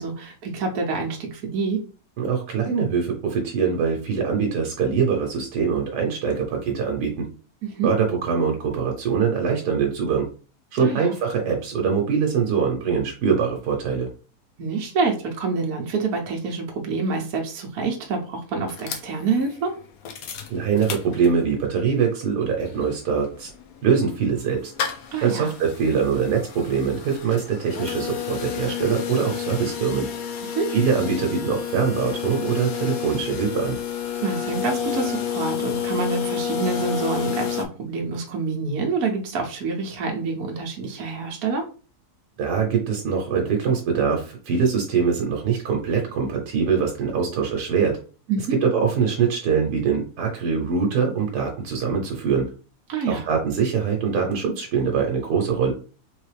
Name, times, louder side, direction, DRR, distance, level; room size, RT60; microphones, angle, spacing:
voice 1, 0.0-1.8 7.6-7.9 10.8-11.1 14.6-19.7 25.1-25.5 30.4-30.7 34.2-41.7 48.3-48.6 52.9-53.2, right 4 dB, 65° right, 1 dB, 1.2 m, -27 dB
voice 2, 2.2-7.3 7.8-10.2 10.7-14.1 20.5-23.5 23.8-24.7 25.2-30.1 30.7-33.8 42.4-48.0 48.6-52.5 53.1-55.7, right 6 dB, 85° right, 1 dB, 1.4 m, -23 dB
sound 1, 18.7-21.7 22.1-22.2 22.3-37.6, left 8 dB, 70° left, 1.1 m, -30 dB
3.9 x 3.2 x 3.3 m, 0.37 s
omnidirectional pair, 1.7 m